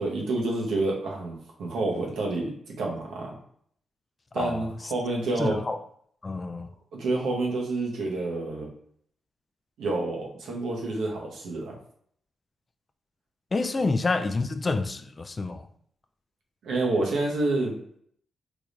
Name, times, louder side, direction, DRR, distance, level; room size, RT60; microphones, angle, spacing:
voice 1, 0.0-3.3 4.3-5.6 6.9-8.7 9.8-11.8 13.8-13.9 16.6-17.7, right 2 dB, 85° right, 0.9 m, -28 dB
voice 2, 4.4-4.7 5.4-5.8 6.2-6.7 13.5-15.6, left 3 dB, 35° left, 0.3 m, -28 dB
3.4 x 3.0 x 2.5 m
cardioid pair, 65°, 0 cm